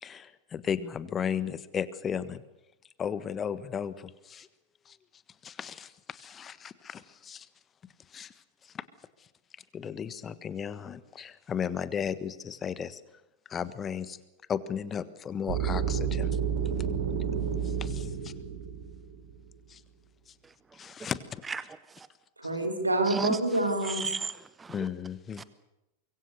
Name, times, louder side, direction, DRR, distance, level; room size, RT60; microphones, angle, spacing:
voice 1, 0.0-2.4 3.0-4.5 4.9-5.0 5.4-7.5 8.1-8.3 8.7-8.8 9.7-13.0 13.5-14.2 14.5-16.3 17.6-18.3 19.7-19.8 20.7-21.4 24.7-25.4, left 7 dB, 25° left, 1.4 m, -35 dB
sound 1, 15.5-19.4, right 7 dB, 60° right, 3.7 m, -30 dB
voice 2, 20.4-20.9 21.4-22.1 23.0-24.9 25.4-25.5, right 5 dB, 15° right, 1.1 m, -36 dB
voice 3, 22.4-24.0, right 2 dB, 85° right, 4.8 m, -27 dB
25.0 x 23.0 x 6.9 m
figure-of-eight pair, 90°, 0 cm